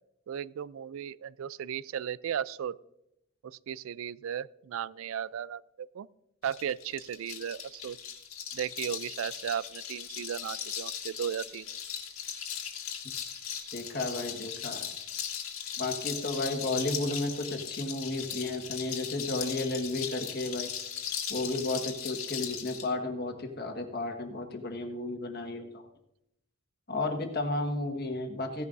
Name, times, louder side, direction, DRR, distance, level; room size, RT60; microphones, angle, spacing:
voice 1, 0.3-2.8 3.4-6.1 6.4-8.0 8.5-11.7, right 9 dB, 75° right, 20 dB, 0.3 m, -36 dB
sound 1, 6.4-22.9, left 8 dB, 80° left, 1.9 m, -38 dB
voice 2, 13.7-14.9 15.8-20.7 21.3-25.8 26.9-28.6, left 2 dB, 50° left, 4 dB, 1.5 m, -33 dB
16.0 x 10.5 x 2.6 m, 0.83 s
head